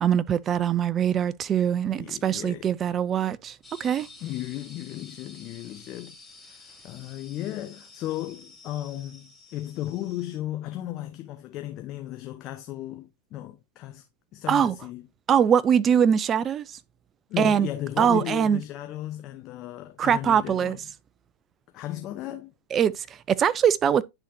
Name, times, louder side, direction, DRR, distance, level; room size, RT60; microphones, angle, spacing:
voice 1, 0.0-4.1 14.5-14.7 15.3-16.8 17.4-17.7 18.0-18.6 20.0-20.8 22.7-24.0, right 8 dB, 30° right, 0.4 m, -22 dB
voice 2, 1.9-2.7 4.2-6.2 6.4-14.0 14.3-15.1 17.3-20.8 21.7-22.5, left 14 dB, 40° left, 0.7 m, -35 dB
sound 1, 3.6-10.4, left 3 dB, 5° left, 2.1 m, -50 dB
10.0 x 4.0 x 2.7 m
figure-of-eight pair, 95°, 0 cm